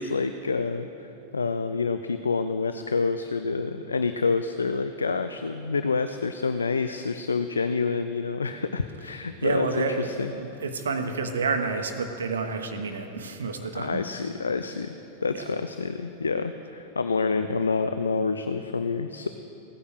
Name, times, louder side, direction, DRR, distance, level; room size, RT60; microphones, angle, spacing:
voice 1, 0.0-10.3 13.7-14.9 15.2-19.3, left 4 dB, 75° left, 10 dB, 0.5 m, -28 dB
voice 2, 9.4-14.0 15.3-15.4, right 4 dB, 70° right, 6 dB, 1.1 m, -29 dB
17.0 x 9.9 x 6.5 m, 2.9 s
figure-of-eight pair, 90°, 0 cm